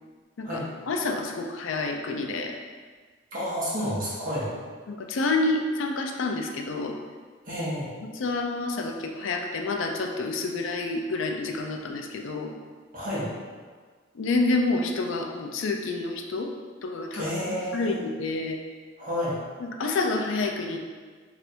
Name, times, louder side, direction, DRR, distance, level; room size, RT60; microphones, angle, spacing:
voice 1, 0.9-2.5 4.9-6.9 8.2-12.5 14.1-16.5 16.8-18.6 19.6-20.9, left 3 dB, 80° left, 3 dB, 0.4 m, -28 dB
voice 2, 3.3-4.5 7.4-7.9 12.9-13.3 17.1-18.0 19.0-19.4, equal, 45° right, -10 dB, 1.3 m, -30 dB
3.2 x 2.5 x 4.3 m, 1.5 s
head